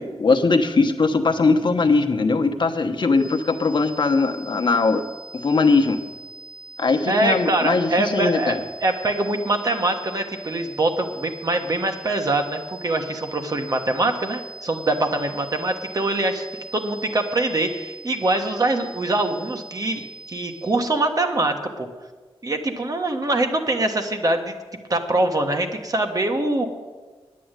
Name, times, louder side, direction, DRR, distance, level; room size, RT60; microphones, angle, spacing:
voice 1, 0.0-5.0 5.4-6.0 6.8-8.6, left 3 dB, 50° left, 5 dB, 1.0 m, -20 dB
sound 1, 3.2-20.9, right 3 dB, 10° right, 2.1 m, -42 dB
voice 2, 7.1-16.5 16.7-21.9 22.4-24.5 24.9-26.7, right 2 dB, 35° right, 5 dB, 1.3 m, -23 dB
10.0 x 8.5 x 9.0 m, 1.4 s
wide cardioid pair, 135°, 10 cm